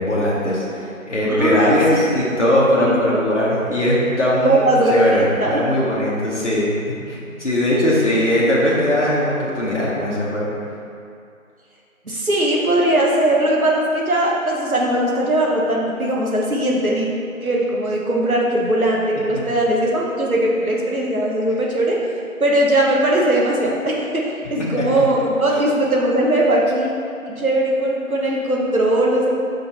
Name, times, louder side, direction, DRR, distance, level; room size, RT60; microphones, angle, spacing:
voice 1, 0.0-4.6 4.9-6.7 7.1-10.5, left 1 dB, 55° left, -6 dB, 1.2 m, -19 dB
voice 2, 1.3-2.0 2.8-3.0 4.4-5.6 12.0-17.1 17.4-22.0 22.4-26.9 27.2-29.3, right 1 dB, 80° right, -3 dB, 1.3 m, -19 dB
5.5 x 4.0 x 4.3 m, 2.5 s
figure-of-eight pair, 175°, 42 cm